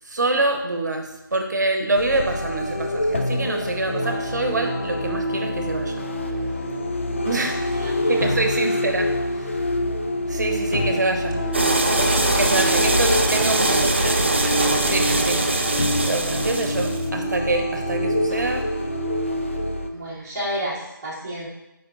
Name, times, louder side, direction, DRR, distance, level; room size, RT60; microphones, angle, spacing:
voice 1, 0.1-6.0 7.2-7.6 8.1-9.1 9.4-9.5 10.3-11.4 12.3-14.3 14.8-15.4 16.1-18.7, right 2 dB, 55° right, 4 dB, 1.0 m, -25 dB
sound 1, 1.9-19.9, left 1 dB, 35° left, 0.4 m, -26 dB
voice 2, 7.4-8.4 10.9-11.0 19.9-21.5, equal, 10° right, -10 dB, 1.6 m, -32 dB
sound 2, 11.5-17.0, right 2 dB, 30° right, 0.4 m, -22 dB
8.4 x 5.0 x 2.4 m, 0.97 s
figure-of-eight pair, 165°, 11 cm